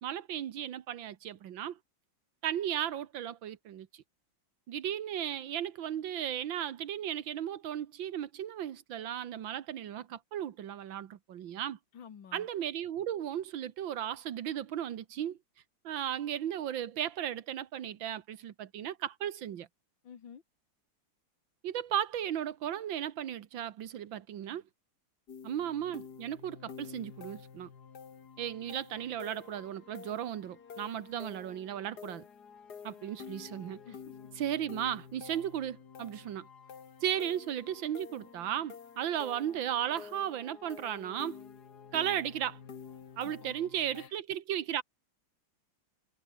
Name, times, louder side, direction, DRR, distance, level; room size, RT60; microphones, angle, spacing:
voice 1, 0.0-1.8 2.4-4.0 4.7-11.8 12.3-15.4 15.8-19.7 21.6-24.6 25.4-27.7 28.4-32.3 32.8-33.8 34.4-36.5 37.0-41.4 41.9-42.6 43.2-44.8, right 10 dB, 75° right, 1.9 m, -35 dB
voice 2, 11.9-12.5 20.0-20.4 33.9-34.2 43.2-43.7 44.0-44.1, left 7 dB, 75° left, 2.5 m, -51 dB
sound 1, 25.3-44.1, left 6 dB, 55° left, 2.3 m, -50 dB
omnidirectional pair, 2.1 m